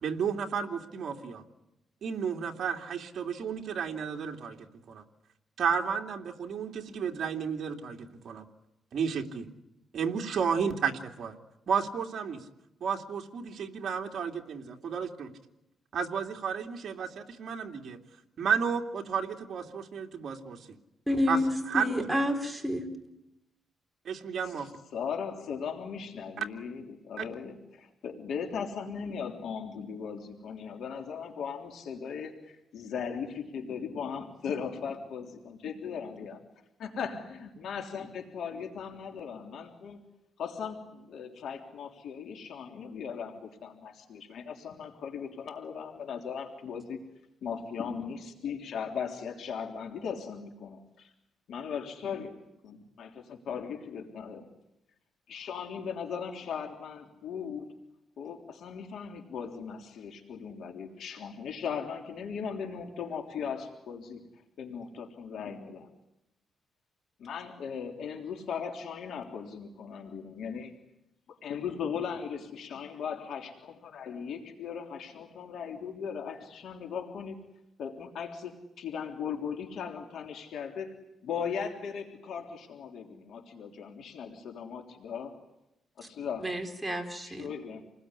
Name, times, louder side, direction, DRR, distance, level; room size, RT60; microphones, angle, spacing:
voice 1, 0.0-1.4 2.0-5.0 5.6-8.4 8.9-9.5 9.9-11.3 11.7-12.4 12.8-15.3 15.9-18.0 18.4-20.6 21.3-21.4 21.7-22.1 24.0-24.7 26.4-26.5 27.2-27.3, right 6 dB, 55° right, 2 dB, 2.7 m, -32 dB
voice 2, 21.1-22.9 86.4-87.5, left 1 dB, 5° right, 2 dB, 3.9 m, -29 dB
voice 3, 24.9-36.4 36.8-40.0 40.4-47.0 47.4-51.1 51.5-52.3 52.6-54.5 55.3-57.7 58.2-64.2 64.6-65.9 67.2-70.7 71.4-77.3 77.8-80.9 81.2-85.4 86.0-86.5 87.2-87.8, left 6 dB, 70° left, 3 dB, 3.4 m, -38 dB
28.5 x 20.5 x 9.9 m, 0.88 s
cardioid pair, 130°, 0 cm